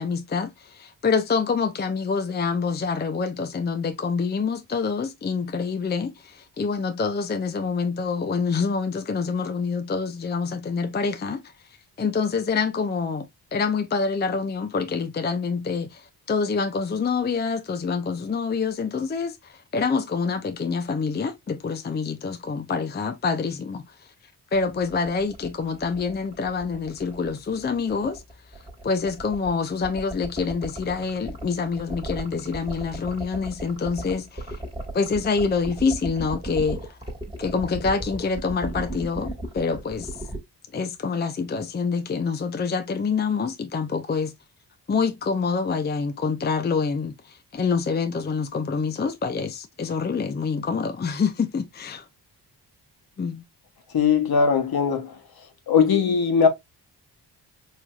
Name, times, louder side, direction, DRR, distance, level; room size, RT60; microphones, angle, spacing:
voice 1, 0.0-11.4 12.0-13.3 13.5-23.8 24.5-28.2 28.8-34.6 34.9-36.8 37.4-40.1 40.7-44.3 44.9-52.0 53.2-53.4, left 5 dB, 25° left, 0.5 m, -26 dB
sound 1, 24.5-40.4, right 1 dB, 10° right, 1.5 m, -35 dB
voice 2, 53.9-55.2 55.7-56.5, left 6 dB, 60° left, 1.1 m, -20 dB
4.7 x 2.7 x 2.3 m
cardioid pair, 70°, 42 cm